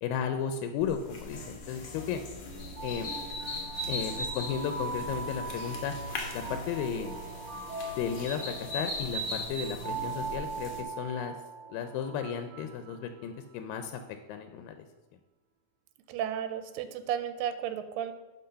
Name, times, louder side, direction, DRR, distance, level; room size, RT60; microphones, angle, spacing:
voice 1, 0.0-2.2 2.8-3.1 3.9-5.9 6.3-7.2 8.0-11.4 11.7-14.0 14.3-14.9, left 7 dB, 85° left, 7 dB, 2.3 m, -34 dB
sound 1, 0.8-10.8, left 1 dB, 65° left, 1.2 m, -39 dB
sound 2, 2.5-13.6, right 4 dB, 60° right, 3.5 m, -41 dB
voice 2, 16.1-18.1, right 9 dB, 90° right, 10 dB, 2.4 m, -33 dB
11.5 x 4.0 x 5.6 m, 1.1 s
omnidirectional pair, 3.9 m